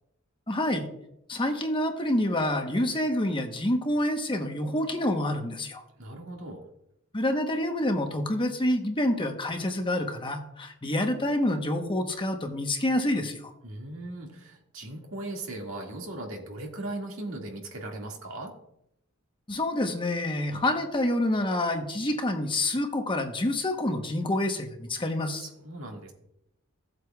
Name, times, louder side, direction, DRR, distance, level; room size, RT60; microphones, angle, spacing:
voice 1, 0.5-0.9 1.3-5.8 7.1-13.5 19.5-25.5, left 1 dB, 25° left, 4 dB, 1.0 m, -27 dB
voice 2, 6.0-6.6 13.6-18.5 25.3-26.1, right 2 dB, 70° right, 1 dB, 2.0 m, -38 dB
16.0 x 7.9 x 2.3 m, 0.79 s
head